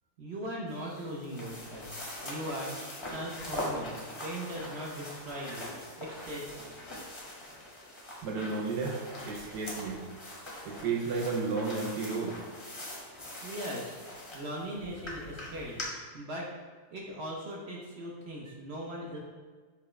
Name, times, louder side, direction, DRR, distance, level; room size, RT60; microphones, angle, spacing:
voice 1, 0.2-1.9 2.2-2.7 3.0-4.0 4.2-5.7 6.0-6.7 13.4-14.0 14.3-15.8 16.1-16.5 16.9-19.2, right 1 dB, 55° right, -3 dB, 0.7 m, -39 dB
sound 1, 0.7-15.8, left 1 dB, 25° left, 0.7 m, -42 dB
voice 2, 8.2-10.0 10.6-12.4, right 4 dB, 75° right, -1 dB, 1.3 m, -32 dB
6.7 x 2.3 x 3.1 m, 1.4 s
omnidirectional pair, 1.8 m